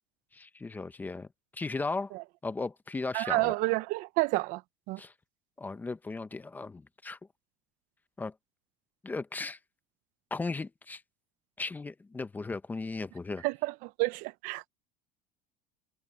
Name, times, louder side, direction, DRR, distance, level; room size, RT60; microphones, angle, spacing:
voice 1, 0.3-1.3 1.5-2.1 2.4-3.5 5.0-5.1 5.6-7.2 8.2-8.3 9.0-9.6 10.3-11.0 11.6-13.4, left 3 dB, 10° left, 0.7 m, -36 dB
voice 2, 3.1-4.6 4.9-5.0 13.4-14.6, right 22 dB, 60° right, 0.8 m, -30 dB
cardioid pair, 145°, 15 cm